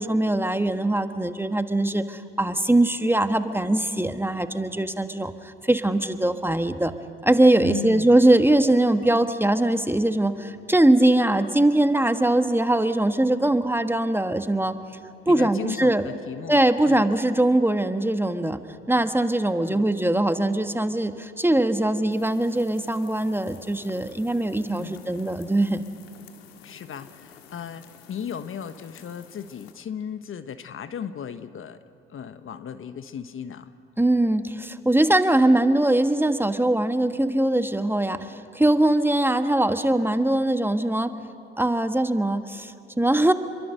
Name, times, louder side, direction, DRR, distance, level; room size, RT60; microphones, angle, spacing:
voice 1, 0.0-6.9 7.2-14.8 15.3-16.1 16.5-18.6 18.9-25.8 34.0-41.1 41.6-43.3, right 1 dB, 5° right, 9 dB, 1.3 m, -21 dB
voice 2, 7.6-8.2 15.3-16.6 16.9-17.0 19.6-19.8 24.7-25.0 26.6-27.8 28.1-31.8 32.1-33.7, left 8 dB, 45° left, 11 dB, 1.2 m, -35 dB
sound 1, 22.1-29.7, left 7 dB, 85° left, 1.8 m, -50 dB
28.5 x 23.0 x 6.6 m, 2.5 s
hypercardioid pair, 60°, 30 cm